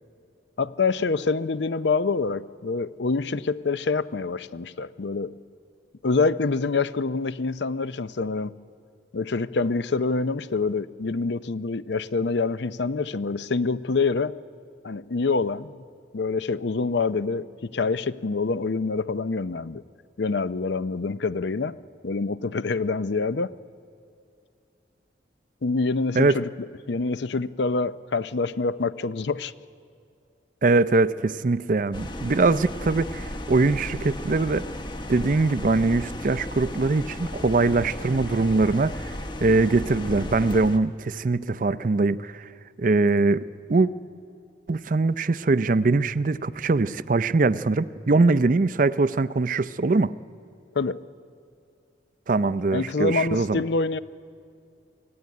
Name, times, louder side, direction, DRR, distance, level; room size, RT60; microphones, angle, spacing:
voice 1, 0.6-5.3 6.0-8.5 9.1-14.3 14.8-15.7 16.1-19.8 20.2-21.8 22.0-23.5 25.6-26.5 26.9-29.5 50.8-51.0 52.7-54.0, left 4 dB, 70° left, 15 dB, 0.6 m, -26 dB
voice 2, 30.6-34.7 35.1-39.1 39.4-42.5 42.8-43.9 44.7-50.1 52.3-53.6, right 3 dB, 45° right, 16 dB, 0.5 m, -22 dB
sound 1, 31.9-40.8, left 1 dB, 25° left, 1.1 m, -35 dB
24.0 x 16.0 x 9.5 m, 2.5 s
head